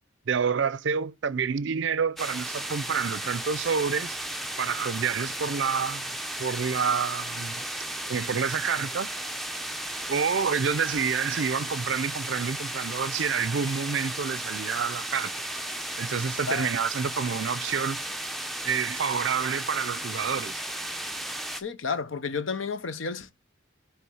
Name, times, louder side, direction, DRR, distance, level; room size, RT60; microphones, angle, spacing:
voice 1, 0.3-4.2 4.6-6.1 6.4-7.6 8.1-9.1 10.1-15.3 16.0-18.0 18.6-20.6, right 6 dB, 65° right, 0.5 m, -28 dB
sound 1, 2.2-21.6, right 1 dB, ahead, 0.7 m, -34 dB
voice 2, 21.5-23.3, left 5 dB, 70° left, 0.8 m, -31 dB
9.4 x 3.5 x 5.5 m
head